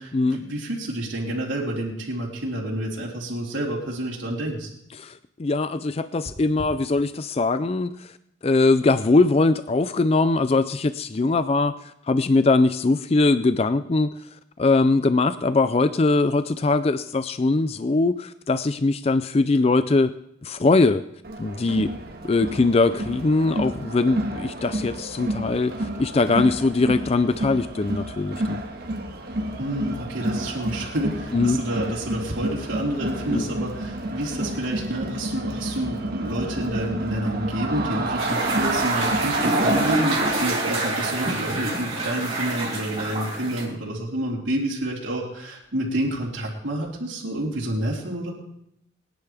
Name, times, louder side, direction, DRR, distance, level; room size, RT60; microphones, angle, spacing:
voice 1, 0.0-4.7 29.6-48.3, right 1 dB, 65° right, -4 dB, 3.7 m, -29 dB
voice 2, 4.9-8.1 8.4-14.1 14.6-20.1 20.4-21.0 21.4-21.9 22.2-28.6 31.3-31.6 33.3-33.5, left 3 dB, 30° left, 12 dB, 0.4 m, -21 dB
Crowd, 21.2-40.7, right 1 dB, 50° right, 1.6 m, -30 dB
sound 1, 38.2-43.6, right 2 dB, 30° right, 3.3 m, -26 dB
24.0 x 10.5 x 3.5 m, 0.77 s
head